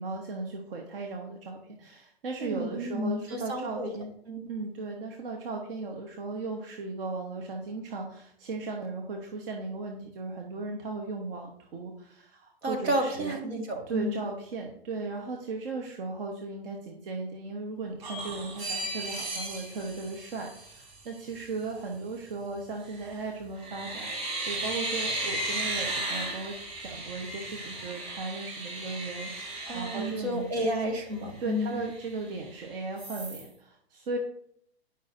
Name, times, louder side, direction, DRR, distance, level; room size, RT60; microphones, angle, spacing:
voice 1, 0.0-4.1 4.5-13.4 13.9-26.5 26.8-30.7 31.4-34.2, right 3 dB, 60° right, 2 dB, 1.2 m, -37 dB
voice 2, 2.4-3.9 4.3-4.5 12.6-14.2 29.7-31.8, equal, 75° right, 2 dB, 2.0 m, -31 dB
sound 1, 18.0-21.0 22.9-23.2 23.6-30.9 31.3-31.4 31.7-32.6 33.0-33.5, right 2 dB, 20° right, 2.6 m, -35 dB
10.5 x 5.5 x 2.6 m, 0.68 s
hypercardioid pair, 130°, 32 cm